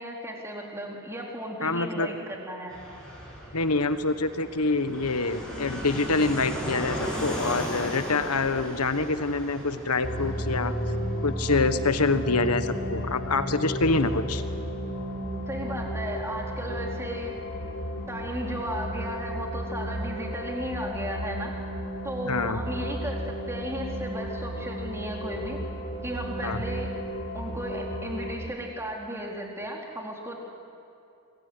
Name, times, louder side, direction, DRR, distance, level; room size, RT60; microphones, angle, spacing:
voice 1, 0.0-2.8 15.5-17.3 18.1-21.5 22.0-25.6 26.0-27.0 27.3-30.4, right 1 dB, 10° right, -1 dB, 4.3 m, -35 dB
voice 2, 1.6-2.1 3.5-10.7 11.2-14.4 22.3-22.6 26.4-26.6, left 3 dB, 85° left, 10 dB, 1.4 m, -26 dB
Fixed-wing aircraft airplane, 2.7-21.0, equal, 5° left, 7.5 m, -39 dB
sound 1, 10.0-28.4, equal, 55° left, 3.8 m, -33 dB
26.0 x 22.0 x 9.8 m, 2.6 s
head